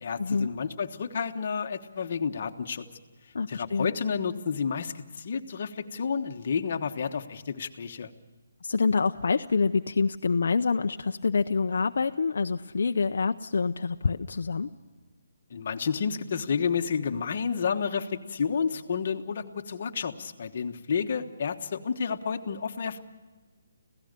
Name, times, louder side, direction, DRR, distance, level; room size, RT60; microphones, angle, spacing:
voice 1, 0.0-2.9 3.5-8.1 15.5-23.0, left 6 dB, 40° left, 5 dB, 1.2 m, -30 dB
voice 2, 3.3-3.9 8.6-14.7, left 4 dB, 65° left, 6 dB, 0.6 m, -26 dB
26.0 x 16.5 x 6.7 m, 1.3 s
hypercardioid pair, 175°, 0 cm